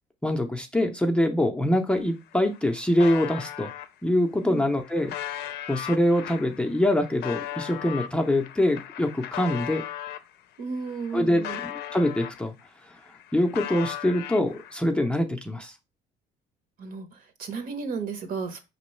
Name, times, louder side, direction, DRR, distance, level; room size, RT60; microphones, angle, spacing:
voice 1, 0.2-3.7 4.0-9.8 11.1-12.5 13.3-15.7, left 1 dB, 5° left, 0.5 m, -24 dB
sound 1, 2.0-2.1 2.3-3.9 4.5-10.3 10.7-12.7 13.0-14.8, left 12 dB, 75° left, 0.5 m, -37 dB
voice 2, 10.6-11.6 16.8-18.6, right 5 dB, 55° right, 1.0 m, -33 dB
5.1 x 3.0 x 3.1 m
cardioid pair, 110°, 17 cm